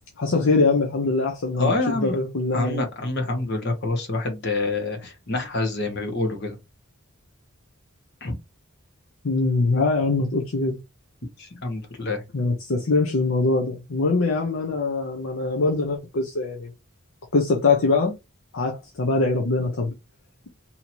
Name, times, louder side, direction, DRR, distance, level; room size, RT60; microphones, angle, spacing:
voice 1, 0.2-2.8 9.2-10.8 12.3-16.7 17.3-18.1 18.5-19.9, left 3 dB, 70° left, 0.7 m, -23 dB
voice 2, 1.6-2.2 2.5-6.6 8.2-8.3 11.4-12.2, left 2 dB, 50° left, 1.1 m, -27 dB
2.8 x 2.7 x 4.4 m
head